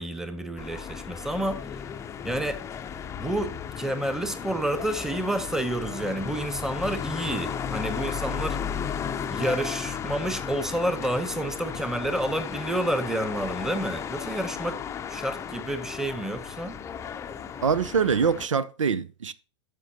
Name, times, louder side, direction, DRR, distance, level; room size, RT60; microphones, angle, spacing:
voice 1, 0.0-1.7 2.2-2.6 3.2-8.6 9.3-14.8 15.1-16.8, right 1 dB, 5° right, 1.1 m, -29 dB
sound 1, 0.6-18.5, left 7 dB, 20° left, 0.6 m, -35 dB
voice 2, 17.6-19.3, right 6 dB, 80° right, 0.6 m, -24 dB
12.5 x 6.6 x 2.9 m
hypercardioid pair, 105°, 16 cm